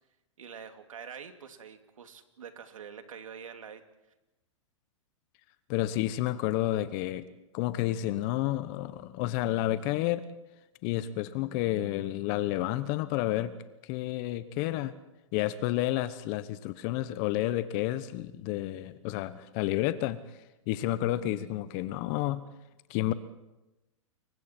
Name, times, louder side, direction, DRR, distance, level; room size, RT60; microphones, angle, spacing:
voice 1, 0.4-3.8, right 7 dB, 90° right, 7 dB, 2.5 m, -45 dB
voice 2, 5.7-7.3 7.5-10.2 10.8-13.5 13.8-14.9 15.3-20.2 20.7-22.4 22.9-23.1, left 14 dB, 40° left, 13 dB, 1.1 m, -30 dB
28.5 x 23.5 x 4.5 m, 0.98 s
hypercardioid pair, 130°, 17 cm